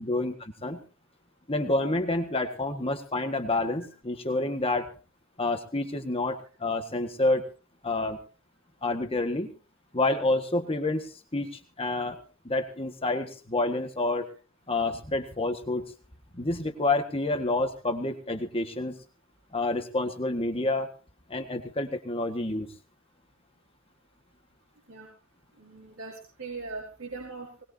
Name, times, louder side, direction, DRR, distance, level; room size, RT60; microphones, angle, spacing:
voice 1, 0.1-0.8 1.5-4.9 5.4-7.5 7.8-8.2 8.8-9.5 9.9-12.2 12.4-14.3 14.7-15.9 16.3-19.0 19.5-20.9 21.3-22.7, left 2 dB, 30° left, 5 dB, 1.6 m, -28 dB
voice 2, 25.6-27.6, right 3 dB, 80° right, -2 dB, 4.9 m, -40 dB
20.5 x 20.5 x 2.8 m, 0.36 s
head